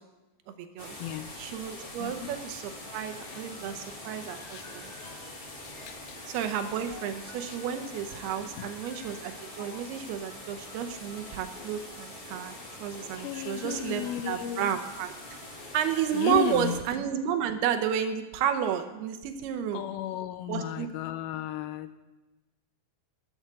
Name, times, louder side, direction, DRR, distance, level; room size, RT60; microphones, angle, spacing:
voice 1, 0.6-1.0 1.4-4.9 6.3-15.4 15.7-19.8 20.5-20.9, right 9 dB, 90° right, 8 dB, 2.8 m, -31 dB
sound 1, 0.8-16.8, left 1 dB, 35° left, 0.8 m, -44 dB
voice 2, 2.0-2.4 3.2-4.6 5.6-6.2 7.5-7.6 8.6-8.7 13.1-14.7 16.1-16.8 19.7-21.9, left 12 dB, 80° left, 11 dB, 2.3 m, -35 dB
sound 2, 2.1-10.0 10.2-14.5 14.8-17.4, left 4 dB, 55° left, 2.6 m, -52 dB
11.5 x 7.9 x 7.9 m, 1.1 s
omnidirectional pair, 4.5 m